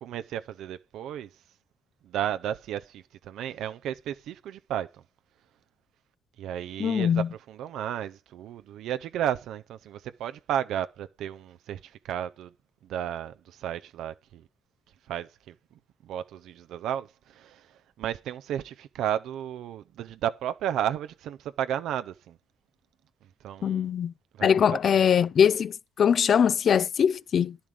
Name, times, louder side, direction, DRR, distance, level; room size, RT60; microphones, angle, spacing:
voice 1, 0.0-1.3 2.0-5.0 6.4-12.5 12.8-14.5 15.1-15.5 16.0-22.4 23.4-23.9 24.3-25.0, right 10 dB, 80° right, 0.6 m, -33 dB
voice 2, 6.8-7.3 23.6-24.1 24.4-27.6, left 8 dB, 55° left, 0.5 m, -22 dB
10.5 x 7.3 x 5.0 m
cardioid pair, 90°, 0 cm